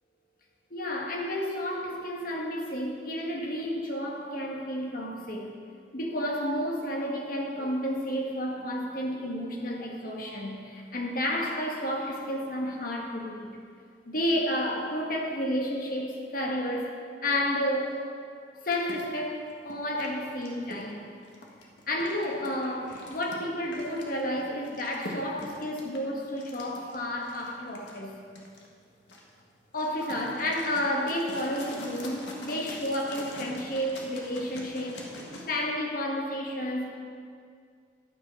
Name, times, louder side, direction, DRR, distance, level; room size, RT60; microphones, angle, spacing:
voice 1, 0.7-5.5 5.9-13.5 14.0-18.0 18.6-21.1 21.9-28.2 29.7-35.2 35.5-36.9, equal, 50° left, 0 dB, 1.6 m, -31 dB
sound 1, 18.7-35.4, left 1 dB, 85° left, 1.6 m, -45 dB
11.5 x 7.3 x 5.6 m, 2.2 s
head